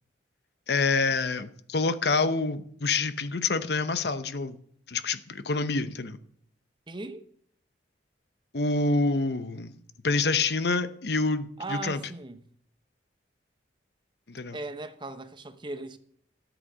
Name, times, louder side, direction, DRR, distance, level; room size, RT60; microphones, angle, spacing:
voice 1, 0.7-4.6 4.9-6.2 8.5-9.7 10.0-12.0 14.3-14.6, left 3 dB, 60° left, 0.8 m, -27 dB
voice 2, 6.9-7.3 11.6-12.5 14.5-16.0, right 2 dB, 25° right, 0.8 m, -38 dB
13.5 x 8.1 x 6.2 m
head